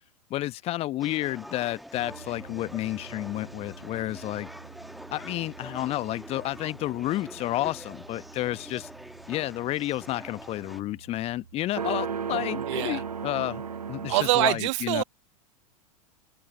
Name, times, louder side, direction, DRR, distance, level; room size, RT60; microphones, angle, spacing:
voice 1, 0.3-4.5 5.1-8.9 9.3-13.6 13.9-15.0, left 15 dB, 30° left, 1.3 m, -31 dB
sound 1, 1.0-10.8, equal, ahead, 1.5 m, -45 dB
sound 2, 1.9-14.5, right 6 dB, 80° right, 0.6 m, -40 dB
voice 2, 12.3-13.0 14.1-15.0, right 21 dB, 50° right, 1.3 m, -25 dB
figure-of-eight pair, 90°, 19 cm